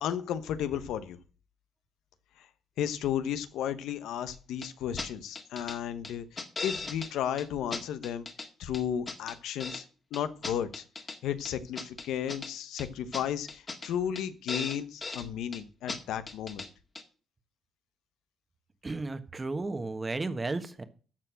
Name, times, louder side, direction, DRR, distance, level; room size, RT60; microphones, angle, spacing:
voice 1, 0.0-1.2 2.4-2.5 2.8-6.2 6.6-8.3 8.6-9.8 10.1-10.8 11.2-16.7, left 9 dB, 85° left, 12 dB, 0.9 m, -33 dB
sound 1, 4.6-4.7 5.0-5.1 5.3-5.8 6.0-7.1 7.4-7.5 7.7-8.5 8.7-9.8 10.1-11.2 11.4-12.5 12.8-12.9 13.1-13.2 13.5-13.9 14.1-14.2 14.5-15.3 15.5-15.6 15.9-16.0 16.3-16.7 16.9-17.0, left 3 dB, 30° left, 1.9 m, -38 dB
voice 2, 18.8-20.8, right 3 dB, 25° right, 10 dB, 1.4 m, -33 dB
13.5 x 4.6 x 7.5 m, 0.38 s
cardioid pair, 90°, 0 cm